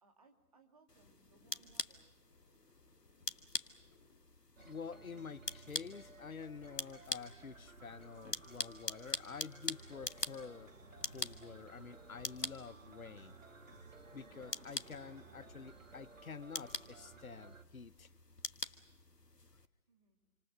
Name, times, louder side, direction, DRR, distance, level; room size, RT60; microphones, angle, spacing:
voice 1, 0.0-2.1 19.9-20.2, right 4 dB, 25° right, 2.4 m, -67 dB
sound 1, 0.9-19.7, left 3 dB, 85° left, 1.6 m, -45 dB
sound 2, 1.0-1.8 2.2-4.2 4.6-4.7 5.0-5.2 5.5-5.6 6.0-6.1 6.6-7.3 8.0-8.1 8.5-9.6 9.8-9.9 10.2-10.4 10.9-11.0 11.4-11.5 11.9-12.0, left 3 dB, 5° left, 1.9 m, -68 dB
voice 2, 4.6-10.7 11.1-13.3 14.1-18.1, left 5 dB, 60° left, 1.0 m, -49 dB
sound 3, 4.6-17.6, right 3 dB, 55° right, 2.0 m, -57 dB
28.0 x 26.5 x 6.5 m
figure-of-eight pair, 155°, 47 cm